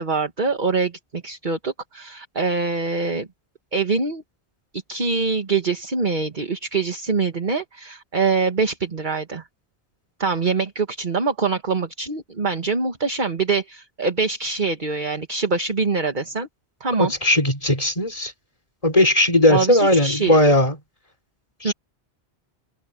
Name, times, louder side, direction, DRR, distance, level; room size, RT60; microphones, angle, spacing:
voice 1, 0.0-3.3 3.7-4.2 4.7-9.4 10.2-16.5 16.8-17.1 19.5-20.4 21.6-21.7, right 4 dB, 45° right, 1.7 m, -24 dB
voice 2, 17.0-18.3 18.8-20.8 21.6-21.7, left 1 dB, 30° left, 3.7 m, -18 dB
omnidirectional pair, 1.1 m